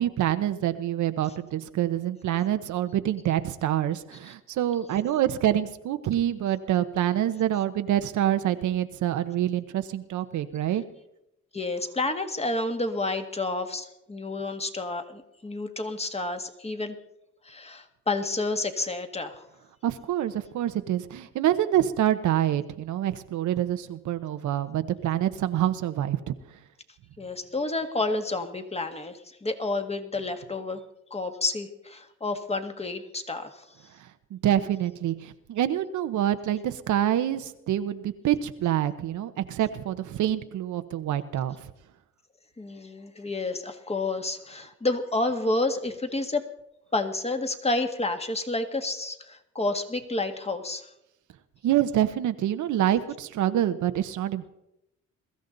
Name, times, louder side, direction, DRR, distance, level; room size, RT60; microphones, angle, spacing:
voice 1, 0.0-10.8 19.8-26.3 34.3-35.1 35.5-41.6 51.6-54.5, right 11 dB, 75° right, 9 dB, 0.9 m, -26 dB
voice 2, 11.5-17.0 17.4-19.4 27.2-30.8 31.1-33.7 42.6-46.4 46.9-50.9, left 2 dB, 20° left, 6 dB, 1.7 m, -30 dB
22.0 x 13.5 x 4.0 m, 0.84 s
cardioid pair, 90°, 30 cm